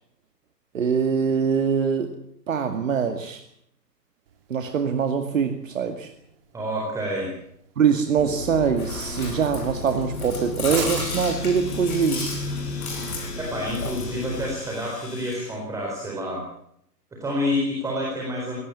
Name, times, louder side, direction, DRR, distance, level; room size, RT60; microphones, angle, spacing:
voice 1, 0.7-2.1 2.5-3.4 4.5-6.1 7.8-12.3, right 6 dB, 50° right, 6 dB, 2.2 m, -23 dB
sound 1, 4.3-12.3, right 8 dB, 35° right, 2.4 m, -42 dB
voice 2, 6.5-7.3 13.4-16.4 17.2-18.6, left 1 dB, 5° right, -1 dB, 4.1 m, -28 dB
Chewing mastication, 8.2-14.5, left 3 dB, 60° left, 7.6 m, -31 dB
Domestic sounds home sounds, 10.8-15.6, left 4 dB, 40° left, 6.9 m, -43 dB
21.0 x 17.5 x 8.4 m, 0.72 s
figure-of-eight pair, 135°, 49 cm